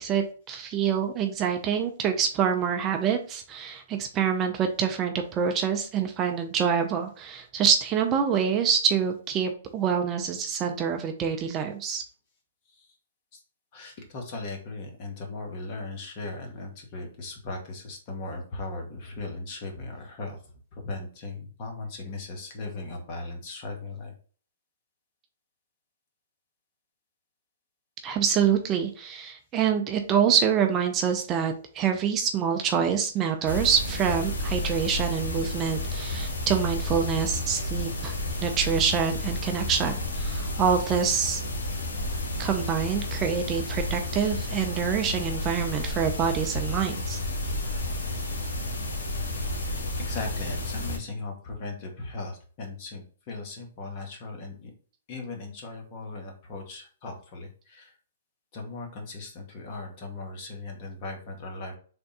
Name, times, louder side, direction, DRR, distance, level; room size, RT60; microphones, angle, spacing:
voice 1, 0.0-12.0 28.0-38.1 38.4-41.4 42.4-47.2, right 7 dB, 25° right, 4 dB, 0.5 m, -26 dB
voice 2, 13.7-20.4 20.7-24.1 50.0-54.7 55.1-57.9 58.5-61.8, left 3 dB, 40° left, 2 dB, 1.2 m, -38 dB
sound 1, 33.5-51.0, left 1 dB, 80° left, 1.2 m, -31 dB
3.5 x 2.2 x 4.0 m, 0.42 s
hypercardioid pair, 140°, 0 cm